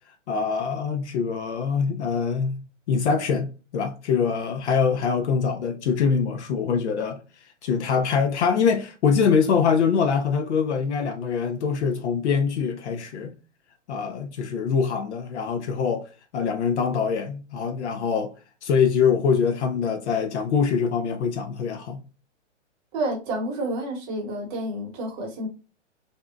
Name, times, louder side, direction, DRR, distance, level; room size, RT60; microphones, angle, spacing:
voice 1, 0.3-7.2 7.6-13.3 13.9-18.3 18.6-22.0, left 6 dB, 65° left, 0.5 m, -24 dB
voice 2, 22.9-25.5, right 1 dB, 30° right, 0.9 m, -29 dB
2.6 x 2.2 x 2.3 m
hypercardioid pair, 130°, 37 cm